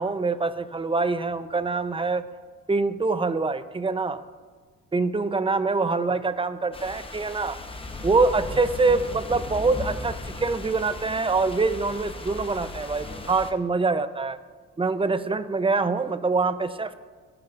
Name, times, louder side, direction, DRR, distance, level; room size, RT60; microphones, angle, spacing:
voice 1, 0.0-2.2 2.7-4.2 4.9-7.6 8.0-14.4 14.8-16.9, right 3 dB, 20° right, 11 dB, 0.7 m, -25 dB
sound 1, 6.7-13.5, left 2 dB, 20° left, 1.0 m, -37 dB
20.5 x 12.0 x 2.6 m, 1.5 s
cardioid pair, 90°, 30 cm